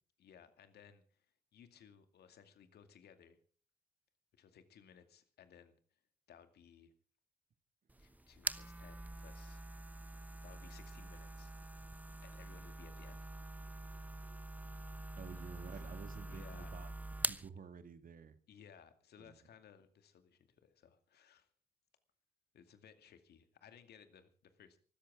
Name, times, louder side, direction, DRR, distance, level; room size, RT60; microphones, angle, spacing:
voice 1, 0.2-1.3 1.5-3.4 4.4-5.7 6.3-6.9 8.0-9.6 10.4-11.5 12.2-13.3 13.7-14.1 16.2-16.7 18.5-21.5 22.5-24.8, left 8 dB, 60° left, 9 dB, 2.3 m, -61 dB
sound 1, 7.9-17.5, right 2 dB, 10° right, 1.0 m, -45 dB
voice 2, 15.2-16.9 17.2-18.4 19.2-19.4, right 6 dB, 45° right, 9 dB, 2.0 m, -51 dB
24.5 x 13.5 x 3.7 m, 0.43 s
hypercardioid pair, 45°, 19 cm